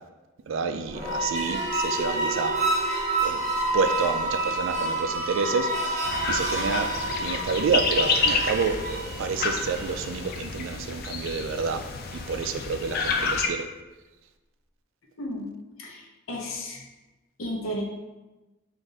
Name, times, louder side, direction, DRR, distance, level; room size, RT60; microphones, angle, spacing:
voice 1, 0.5-2.5 3.2-3.4 3.7-6.9 7.2-8.8 9.2-11.8 12.3-13.7, right 5 dB, 65° right, 8 dB, 0.3 m, -29 dB
sound 1, 0.8-10.2, right 2 dB, 35° right, 0.7 m, -29 dB
sound 2, 6.0-13.5, left 4 dB, 50° left, 0.4 m, -29 dB
voice 2, 15.2-15.5 15.8-16.0 16.3-16.8 17.4-17.8, equal, 75° left, 0 dB, 0.7 m, -32 dB
3.6 x 2.6 x 3.9 m, 1.1 s
head